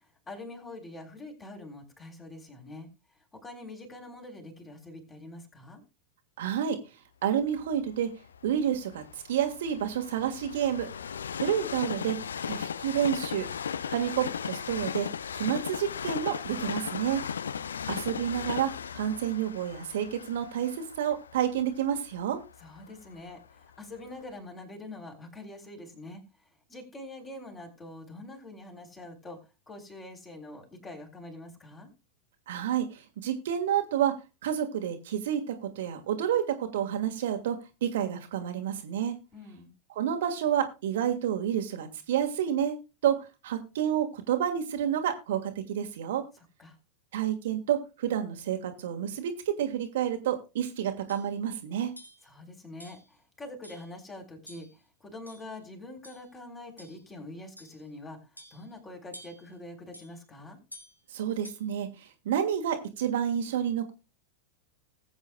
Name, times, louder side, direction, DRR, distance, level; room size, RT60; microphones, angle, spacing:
voice 1, 0.0-2.9 3.3-5.8 22.6-26.2 26.7-29.4 29.7-31.9 39.3-39.7 46.6-46.8 52.2-60.6, left 2 dB, 20° left, 3 dB, 3.6 m, -45 dB
voice 2, 6.4-6.8 7.2-8.1 8.4-10.9 11.4-12.2 12.4-13.5 13.9-15.1 15.3-17.2 17.9-22.4 32.5-34.1 34.4-39.2 39.9-42.8 43.0-43.2 43.4-46.2 47.1-51.9 61.1-61.9 62.2-63.9, right 9 dB, 55° right, 5 dB, 1.6 m, -29 dB
Train, 7.6-23.5 24.1-24.2, left 7 dB, 70° left, 0.4 m, -37 dB
sound 1, 50.6-50.7 51.1-51.3 52.0-52.3 52.8-53.1 53.6-53.9 54.5-54.8 55.3-55.6 56.0-56.3 56.8-57.1 57.6-57.8 58.4-58.7 59.1-59.5 59.9-60.1 60.7-61.0 61.4-61.8, equal, 90° left, 2.6 m, -50 dB
19.5 x 8.0 x 2.2 m, 0.28 s
figure-of-eight pair, 90°, 0 cm